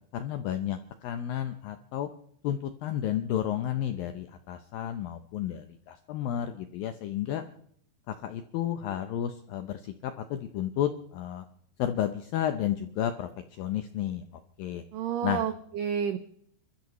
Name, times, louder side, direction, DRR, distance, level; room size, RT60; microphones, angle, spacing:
voice 1, 0.1-2.1 2.4-7.5 8.1-11.5 11.8-14.2 14.6-14.8 15.2-15.4, left 11 dB, 80° left, 8 dB, 2.1 m, -32 dB
voice 2, 14.9-16.2, right 8 dB, 85° right, 9 dB, 1.9 m, -30 dB
29.0 x 13.5 x 3.1 m, 0.67 s
omnidirectional pair, 5.1 m